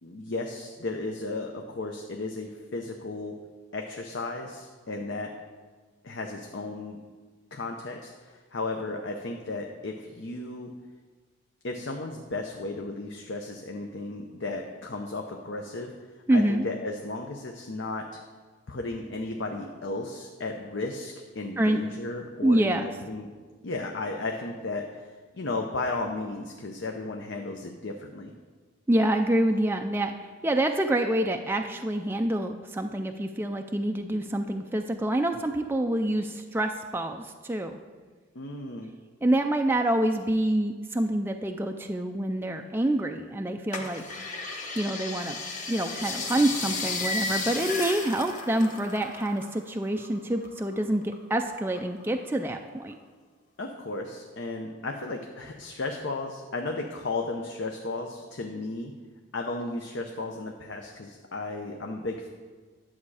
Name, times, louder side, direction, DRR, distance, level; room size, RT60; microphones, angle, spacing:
voice 1, 0.0-3.4 3.7-5.3 6.0-7.0 7.5-10.7 11.6-15.9 16.3-18.1 18.7-23.3 23.6-28.3 38.3-38.9 53.6-58.9 59.3-62.3, left 2 dB, 55° left, 3 dB, 0.7 m, -34 dB
voice 2, 16.3-16.6 21.6-21.8 22.4-22.9 28.9-30.1 30.4-37.8 39.2-44.0 44.8-45.4 45.7-53.0, right 1 dB, 10° right, 4 dB, 0.3 m, -26 dB
sound 1, 43.7-49.6 49.8-51.1 51.6-52.4 52.9-53.0, left 3 dB, 35° left, 1.0 m, -34 dB
11.0 x 7.3 x 4.8 m, 1.5 s
head